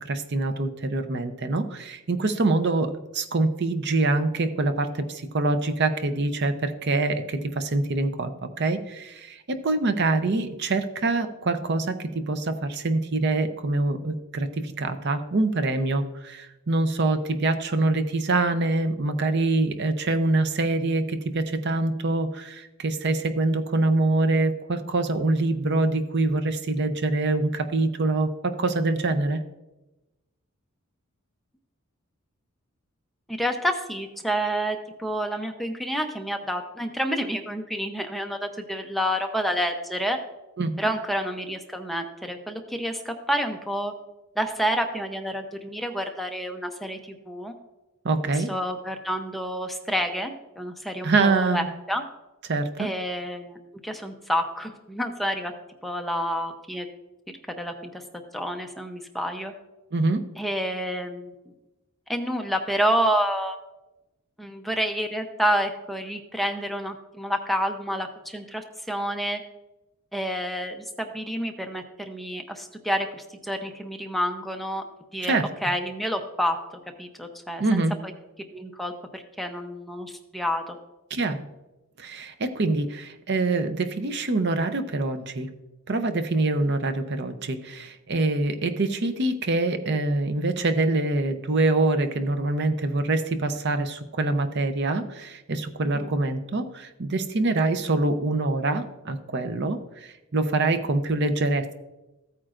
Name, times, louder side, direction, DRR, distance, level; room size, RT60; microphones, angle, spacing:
voice 1, 0.0-29.4 40.6-40.7 48.0-48.5 51.0-51.7 52.5-52.9 59.9-60.2 75.2-75.5 77.6-78.0 81.1-81.5 82.0-85.5 85.9-101.7, right 2 dB, 50° right, 8 dB, 0.7 m, -25 dB
voice 2, 33.3-40.2 40.8-43.9 44.4-47.5 48.5-52.0 52.8-53.6 53.8-55.5 55.8-56.9 57.5-58.0 58.3-59.5 60.4-61.3 62.1-63.6 64.4-69.4 70.1-74.8 75.1-76.6 77.0-78.1 78.5-80.8 95.9-96.1, equal, ahead, 3 dB, 0.7 m, -29 dB
14.5 x 8.9 x 2.5 m, 1.0 s
head